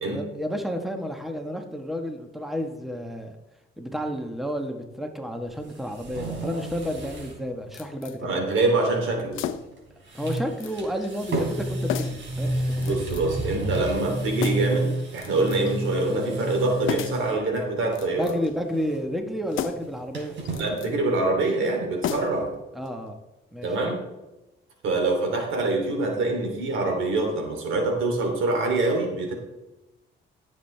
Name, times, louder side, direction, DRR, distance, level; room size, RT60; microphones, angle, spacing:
voice 1, 0.1-3.3 3.8-8.4 10.1-13.3 18.2-20.4 22.7-23.2 23.5-23.9, equal, ahead, 4 dB, 1.4 m, -31 dB
sound 1, 5.4-7.4 7.7-7.8 9.5-9.8 10.0-17.4 17.8-18.3 18.5-20.6, right 1 dB, 65° right, 3.9 m, -31 dB
sound 2, 7.7-8.2 9.3-9.8 10.3-10.8 11.0-11.1 11.9-12.3 12.8-13.4 14.4-14.8 15.2-15.8 16.9-17.3 17.9-18.6 19.5-20.0 20.4-20.9 22.0-22.5 22.8-22.9, left 10 dB, 80° left, 0.7 m, -33 dB
voice 2, 8.2-9.4 12.8-18.3 20.6-22.5 23.6-24.0 24.8-29.3, right 2 dB, 80° right, 2 dB, 3.1 m, -25 dB
17.0 x 7.3 x 3.4 m, 1.0 s
cardioid pair, 90°, 20 cm